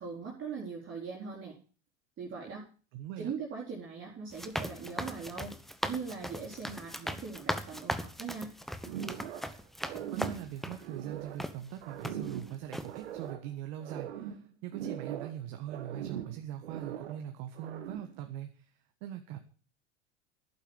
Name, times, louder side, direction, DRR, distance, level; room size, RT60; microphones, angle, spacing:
voice 1, 0.0-1.6 2.2-2.7 3.2-5.6 5.8-8.5, right 5 dB, 35° right, -3 dB, 4.0 m, -40 dB
voice 2, 2.9-3.3 10.1-18.7 19.0-19.4, right 11 dB, 60° right, 6 dB, 1.5 m, -42 dB
sound 1, 4.3-10.8 11.4-11.5 12.0-12.4 12.7-12.9, equal, ahead, 1.1 m, -38 dB
sound 2, 8.8-9.6 9.8-11.5 11.8-13.5 13.8-15.4 15.7-17.2 17.6-18.2, right 9 dB, 80° right, 1.6 m, -41 dB
11.5 x 8.6 x 7.2 m, 0.39 s
hypercardioid pair, 90°, 33 cm